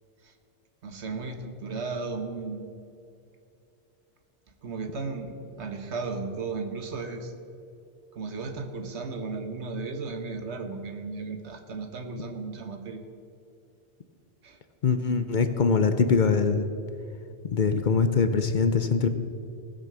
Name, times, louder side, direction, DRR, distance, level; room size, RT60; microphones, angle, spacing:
voice 1, 0.8-2.7 4.6-7.3 8.1-13.0 14.4-14.6, right 4 dB, 75° right, 6 dB, 1.4 m, -35 dB
voice 2, 14.8-16.7 17.5-19.1, left 5 dB, 50° left, 9 dB, 0.7 m, -23 dB
18.0 x 6.2 x 6.7 m, 2.6 s
omnidirectional pair, 1.2 m